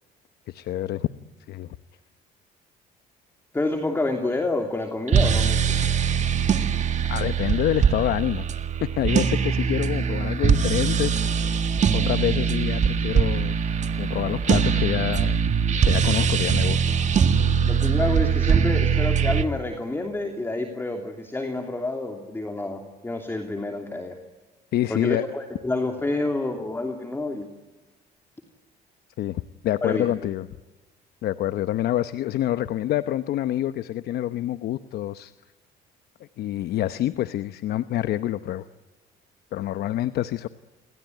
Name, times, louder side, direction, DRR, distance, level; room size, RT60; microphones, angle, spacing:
voice 1, 0.5-1.1 1.5-1.7 7.1-8.5 9.0-11.1 11.9-13.6 14.0-15.4 15.8-16.9 17.2-17.6 24.7-25.2 29.2-30.5 31.2-35.3 36.4-38.6 39.5-40.5, left 13 dB, 70° left, 12 dB, 0.9 m, -27 dB
voice 2, 3.5-5.8 17.7-24.2 24.9-27.5 29.8-30.1, left 2 dB, 15° left, 4 dB, 2.9 m, -28 dB
sound 1, 5.1-19.4, right 7 dB, 45° right, 1.8 m, -22 dB
29.5 x 22.0 x 9.3 m, 1.2 s
cardioid pair, 110°, 17 cm